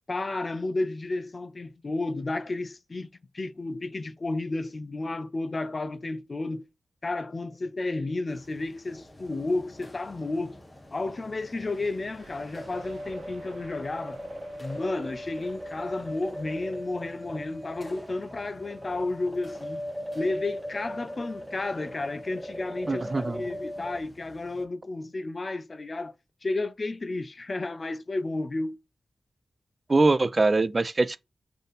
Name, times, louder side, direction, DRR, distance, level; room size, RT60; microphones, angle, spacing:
voice 1, 0.1-3.1 3.3-6.6 7.0-10.6 10.9-14.2 14.6-19.9 20.1-26.1 26.4-28.8, left 2 dB, 50° left, 0.4 m, -32 dB
sound 1, 8.3-24.7, left 1 dB, 20° left, 1.1 m, -52 dB
sound 2, 11.6-17.2, right 3 dB, 85° right, 0.9 m, -54 dB
sound 3, 12.5-24.0, equal, 10° right, 0.8 m, -39 dB
voice 2, 22.9-23.4 29.9-31.2, right 3 dB, 40° right, 0.3 m, -23 dB
3.4 x 2.6 x 3.9 m
cardioid pair, 50°, 0 cm